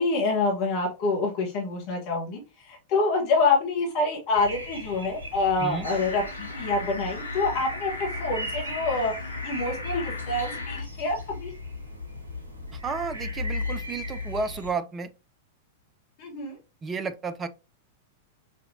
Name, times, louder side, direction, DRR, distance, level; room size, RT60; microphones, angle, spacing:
voice 1, 0.0-11.5 16.2-16.5, left 3 dB, 45° left, 1.2 m, -27 dB
sound 1, 4.3-14.7, left 2 dB, 75° right, 1.1 m, -36 dB
sound 2, 5.8-10.8, left 3 dB, 80° left, 0.9 m, -38 dB
voice 2, 12.7-15.1 16.8-17.5, right 4 dB, 20° right, 0.5 m, -32 dB
5.5 x 2.7 x 2.6 m
figure-of-eight pair, 95°, 0 cm